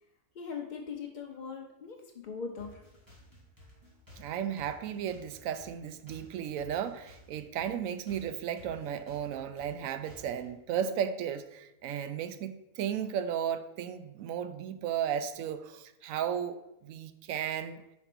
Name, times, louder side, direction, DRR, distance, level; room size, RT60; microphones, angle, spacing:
voice 1, 0.3-2.9, left 5 dB, 55° left, 2 dB, 0.5 m, -40 dB
sound 1, 2.6-10.5, equal, 15° right, 2.2 m, -55 dB
voice 2, 4.2-17.8, right 9 dB, 70° right, 11 dB, 0.9 m, -34 dB
5.2 x 4.2 x 5.9 m, 0.90 s
omnidirectional pair, 1.5 m